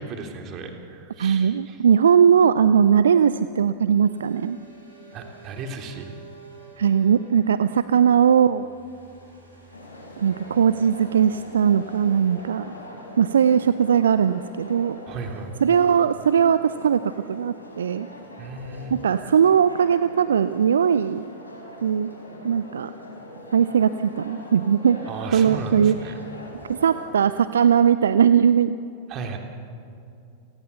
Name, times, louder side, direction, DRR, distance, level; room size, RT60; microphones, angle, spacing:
voice 1, 0.0-1.8 5.1-6.1 15.1-15.5 18.4-18.9 25.1-26.1 29.1-29.4, right 4 dB, 35° right, 3 dB, 3.1 m, -35 dB
voice 2, 1.2-4.6 6.8-8.7 10.2-12.7 13.2-15.0 15.6-18.1 18.9-21.3 21.8-22.1 22.4-22.9 23.5-25.0 25.3-26.0 26.7-28.8, right 8 dB, 65° right, 14 dB, 0.5 m, -19 dB
sound 1, 2.4-14.7, right 4 dB, 85° right, 6.3 m, -51 dB
sound 2, 9.7-27.1, left 1 dB, 80° left, 4.6 m, -42 dB
29.0 x 20.0 x 6.9 m, 2.6 s
figure-of-eight pair, 90°, 0 cm